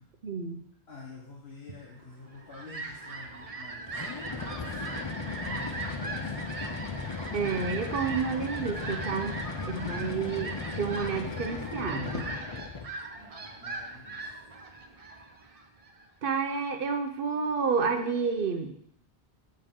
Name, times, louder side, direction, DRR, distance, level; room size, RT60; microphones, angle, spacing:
voice 1, 0.2-0.6 7.3-9.3 9.6-12.2 16.2-18.7, right 5 dB, 60° right, 6 dB, 1.0 m, -30 dB
voice 2, 0.9-5.2 5.5-6.5 13.2-14.4, left 3 dB, 80° left, -4 dB, 1.5 m, -50 dB
Fowl, 2.1-16.1, right 3 dB, 40° right, 0.8 m, -40 dB
sound 1, 3.9-13.0, left 4 dB, 35° left, 0.4 m, -36 dB
7.5 x 6.4 x 3.7 m, 0.68 s
omnidirectional pair, 1.0 m